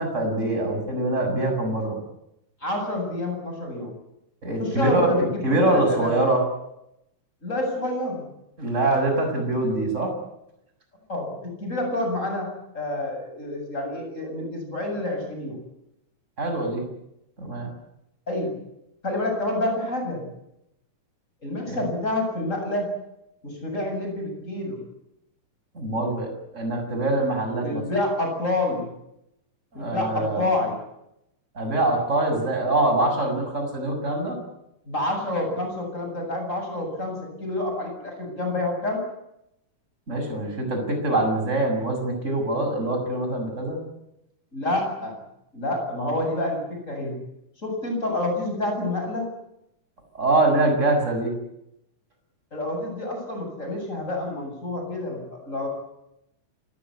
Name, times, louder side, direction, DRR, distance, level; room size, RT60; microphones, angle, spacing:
voice 1, 0.0-2.0 4.4-6.4 8.6-10.1 16.4-16.8 17.4-17.7 21.7-21.8 25.8-27.8 29.7-30.4 31.6-34.3 40.1-43.8 50.1-51.3, right 2 dB, 20° right, 4 dB, 7.1 m, -24 dB
voice 2, 2.6-3.9 4.6-6.3 7.4-8.3 11.1-15.6 18.3-18.5 19.0-20.2 21.4-22.9 23.4-24.8 27.6-28.9 29.7-30.8 34.9-39.0 44.5-45.2 45.5-47.2 47.6-49.3 52.5-55.7, left 1 dB, 20° left, 3 dB, 8.1 m, -28 dB
28.0 x 17.5 x 9.9 m, 0.83 s
omnidirectional pair, 3.7 m